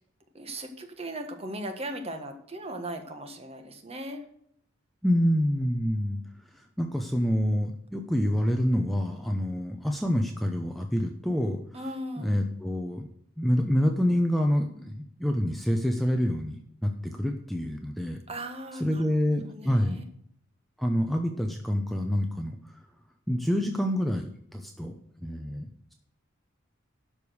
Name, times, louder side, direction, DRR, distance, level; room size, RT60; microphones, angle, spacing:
voice 1, 0.3-4.2 11.7-12.3 18.3-19.0 19.5-20.0, right 1 dB, 30° right, 5 dB, 1.5 m, -38 dB
voice 2, 5.0-6.2 6.8-11.6 12.2-13.1 13.4-16.6 16.8-18.2 18.8-20.0 20.8-22.8 23.3-24.9 25.2-25.9, equal, ahead, 3 dB, 0.8 m, -27 dB
12.0 x 5.3 x 6.3 m, 0.68 s
head